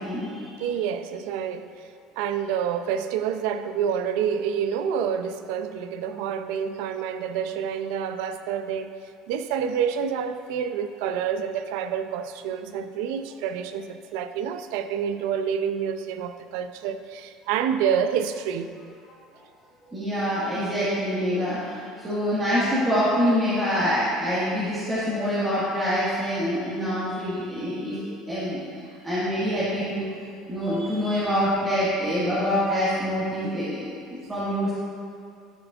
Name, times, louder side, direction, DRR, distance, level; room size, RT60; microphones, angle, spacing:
voice 1, 0.0-0.5 19.9-28.0 28.3-28.6 29.0-30.1 30.5-34.7, equal, 15° right, -12 dB, 1.6 m, -25 dB
voice 2, 0.6-1.9 2.2-8.9 9.3-18.7, right 8 dB, 75° right, 9 dB, 0.4 m, -28 dB
12.5 x 6.9 x 2.4 m, 2.4 s
cardioid pair, 165°, 0 cm